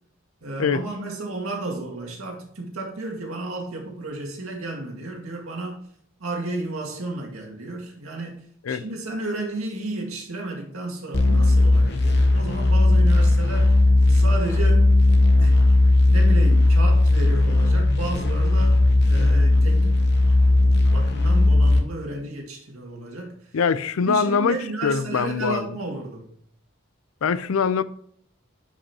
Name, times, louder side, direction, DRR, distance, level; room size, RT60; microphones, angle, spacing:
voice 1, 0.4-5.8 6.2-13.7 14.1-14.8 15.4-15.6 16.1-20.0 20.9-23.3 24.1-26.3, right 2 dB, 80° right, 2.1 m, -32 dB
sound 1, 11.1-21.8, left 2 dB, 55° left, 1.0 m, -17 dB
voice 2, 23.5-25.7 27.2-27.8, left 5 dB, 80° left, 0.5 m, -23 dB
9.9 x 5.3 x 2.9 m
head